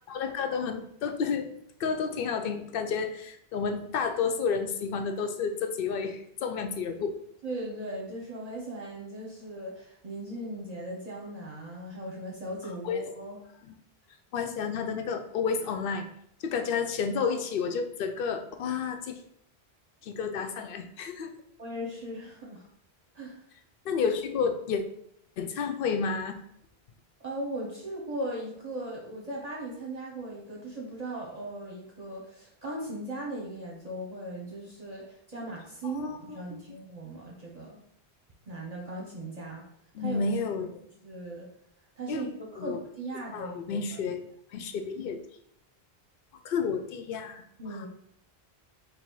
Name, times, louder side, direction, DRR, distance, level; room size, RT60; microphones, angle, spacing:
voice 1, 0.1-1.5 1.8-7.2 12.8-13.0 14.3-16.1 16.4-19.2 20.0-21.3 23.8-24.8 25.4-26.3 35.8-36.2 36.5-36.6 39.9-40.8 42.1-42.2 42.6-42.8 43.3-44.2 44.5-45.2 46.4-47.4 47.7-47.9, left 5 dB, 65° left, 7 dB, 0.7 m, -31 dB
voice 2, 7.4-13.4 17.2-17.4 21.6-22.7 23.1-23.4 27.2-37.8 38.5-39.6 40.0-40.2 40.8-41.5 42.0-43.8 47.6-47.9, right 1 dB, 40° right, -3 dB, 0.9 m, -38 dB
4.1 x 2.8 x 4.5 m, 0.72 s
omnidirectional pair, 1.1 m